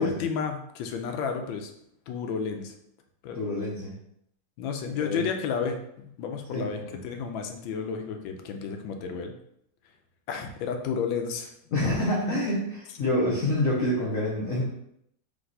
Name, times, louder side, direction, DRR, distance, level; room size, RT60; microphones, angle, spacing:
voice 1, 0.0-1.7 2.1-2.7 3.2-3.4 4.6-5.8 6.0-9.3 10.3-11.9, left 6 dB, 75° left, 5 dB, 1.3 m, -31 dB
voice 2, 3.3-4.0 5.0-5.3 6.5-7.0 11.7-14.7, left 1 dB, 55° left, -5 dB, 0.9 m, -27 dB
3.4 x 3.4 x 4.0 m, 0.74 s
omnidirectional pair, 2.3 m